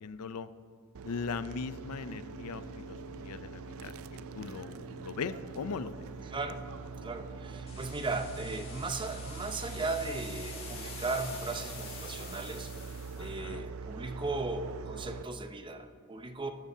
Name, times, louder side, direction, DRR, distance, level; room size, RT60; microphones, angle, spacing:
voice 1, 0.0-0.5 1.0-3.0 3.2-3.9 4.3-6.0 13.2-13.6, left 5 dB, 90° left, 13 dB, 0.5 m, -39 dB
sound 1, 0.9-15.2, right 5 dB, 70° right, 0.4 m, -43 dB
sound 2, 1.7-10.5, left 2 dB, 50° left, 1.2 m, -54 dB
voice 2, 6.2-6.6 7.0-12.7 13.2-16.5, right 3 dB, 20° right, 8 dB, 0.6 m, -37 dB
sound 3, 7.7-13.3, left 4 dB, 25° left, 2.0 m, -47 dB
14.0 x 13.0 x 2.7 m, 2.5 s
head